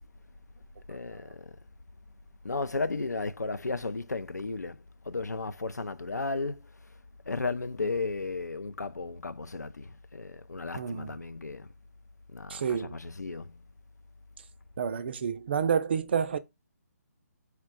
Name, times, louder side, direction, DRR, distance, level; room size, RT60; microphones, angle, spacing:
voice 1, 0.9-1.5 2.4-4.8 5.1-6.7 7.3-11.7 12.3-13.6, left 3 dB, 85° left, 0.4 m, -34 dB
voice 2, 10.7-11.2 12.5-13.0 14.8-16.4, right 7 dB, 40° right, 0.3 m, -29 dB
4.5 x 2.2 x 3.7 m
figure-of-eight pair, 140°, 9 cm